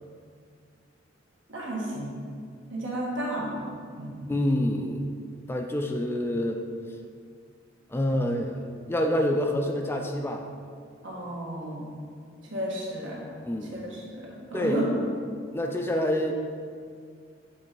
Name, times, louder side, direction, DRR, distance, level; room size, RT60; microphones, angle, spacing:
voice 1, 1.5-2.1 2.7-3.6 3.9-4.2 11.0-11.8 12.5-13.2 13.7-14.9, right 1 dB, 75° right, -4 dB, 1.6 m, -32 dB
voice 2, 4.3-5.0 5.5-6.6 7.9-10.5 13.4-13.9 14.5-14.8 15.5-16.3, left 1 dB, 10° left, 3 dB, 0.4 m, -27 dB
7.5 x 3.9 x 4.6 m, 2.1 s
head